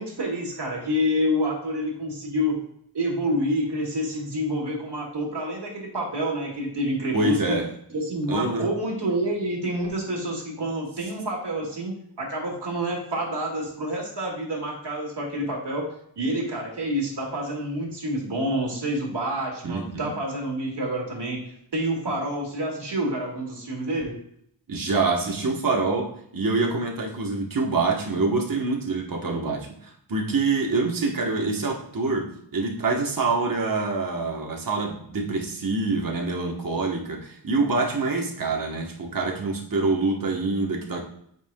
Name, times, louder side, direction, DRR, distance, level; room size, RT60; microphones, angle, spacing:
voice 1, 0.0-2.6 2.9-7.6 7.9-15.9 16.2-21.4 21.7-24.1, equal, 70° right, -1 dB, 2.2 m, -28 dB
voice 2, 7.1-7.7 8.3-8.7 19.6-20.1 24.7-41.0, right 3 dB, 50° right, 1 dB, 1.3 m, -26 dB
8.1 x 5.6 x 2.3 m, 0.67 s
wide cardioid pair, 75°, 43 cm